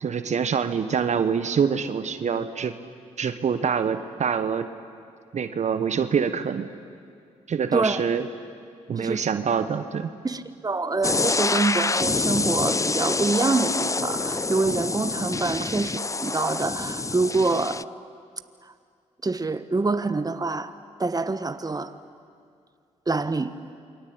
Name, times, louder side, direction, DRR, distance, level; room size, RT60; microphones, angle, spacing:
voice 1, 0.0-2.7 3.2-4.7 5.3-6.7 7.5-8.3 8.9-10.1, right 6 dB, 55° right, 10 dB, 1.3 m, -25 dB
voice 2, 10.2-17.9 19.2-20.7 21.0-21.9 23.1-23.5, right 3 dB, 25° right, 11 dB, 1.4 m, -26 dB
sound 1, 11.0-17.8, left 3 dB, 20° left, 0.6 m, -26 dB
28.5 x 23.5 x 8.8 m, 2.3 s
supercardioid pair, 45°, 14 cm